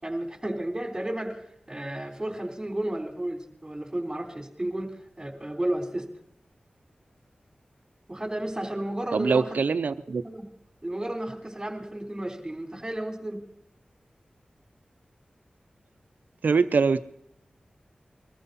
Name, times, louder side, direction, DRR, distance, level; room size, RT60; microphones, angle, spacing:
voice 1, 0.0-6.1 8.1-9.6 10.2-10.5 10.8-13.5, right 1 dB, 20° right, 2 dB, 3.6 m, -33 dB
voice 2, 9.1-10.2 16.4-17.0, right 5 dB, 80° right, 13 dB, 0.6 m, -23 dB
22.0 x 14.0 x 4.1 m, 0.72 s
cardioid pair, 40°, 3 cm